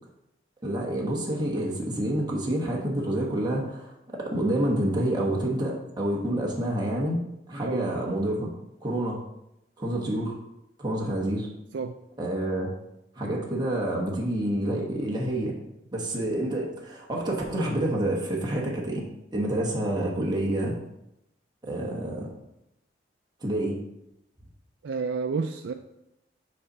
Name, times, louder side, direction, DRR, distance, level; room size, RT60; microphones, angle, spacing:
voice 1, 0.6-7.2 7.5-8.5 8.8-9.2 9.8-10.4 10.8-11.5 12.2-12.7 13.2-15.5 15.9-19.0 19.3-20.7 21.6-22.3 23.4-23.8, right 1 dB, 25° right, -2 dB, 1.2 m, -28 dB
voice 2, 7.6-8.0 11.7-11.9 24.8-25.7, right 4 dB, 80° right, 5 dB, 0.4 m, -30 dB
6.6 x 4.1 x 5.5 m, 0.86 s
head